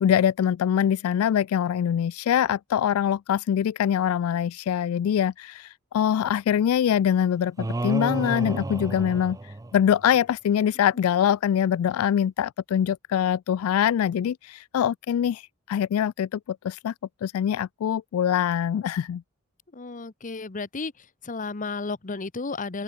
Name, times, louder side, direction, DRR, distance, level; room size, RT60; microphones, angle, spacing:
voice 1, 0.0-9.4 9.7-16.4 16.6-16.9 17.2-19.2, left 9 dB, 75° left, 0.3 m, -24 dB
sound 1, 7.6-10.1, right 2 dB, 15° right, 0.4 m, -30 dB
voice 2, 19.7-22.8, left 3 dB, 35° left, 0.9 m, -33 dB
open air
head